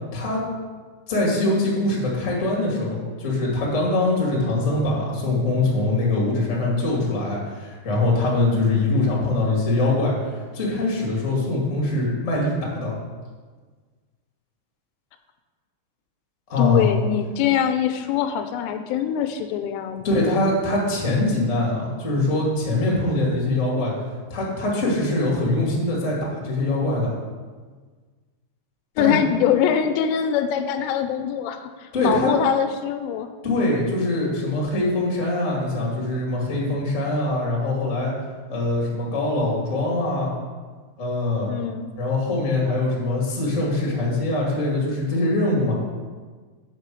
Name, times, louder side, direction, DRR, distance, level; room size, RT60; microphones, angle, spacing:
voice 1, 1.1-12.9 16.5-16.9 20.0-23.9 24.3-27.1 29.0-29.2 31.9-32.3 33.4-38.1 38.5-40.3 41.0-41.5 42.0-45.7, left 2 dB, 30° left, -3 dB, 1.5 m, -23 dB
voice 2, 16.6-20.4 29.0-33.3 41.5-41.9, left 9 dB, 85° left, 8 dB, 3.1 m, -23 dB
8.1 x 6.1 x 6.3 m, 1.5 s
omnidirectional pair, 5.6 m